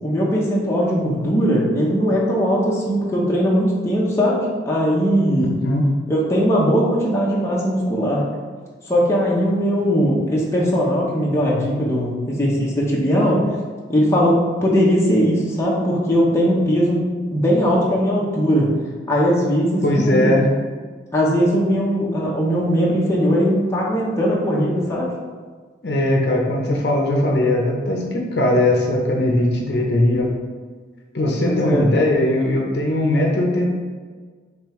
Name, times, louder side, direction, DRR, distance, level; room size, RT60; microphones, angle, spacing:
voice 1, 0.0-5.5 6.1-8.2 8.9-13.4 13.9-17.0 17.3-18.7 19.1-20.3 21.1-25.1 31.5-31.9, equal, 15° left, -5 dB, 0.7 m, -19 dB
voice 2, 19.8-20.5 25.8-30.3 31.1-33.7, left 1 dB, 60° left, 0 dB, 0.7 m, -19 dB
5.2 x 3.3 x 3.1 m, 1.5 s
head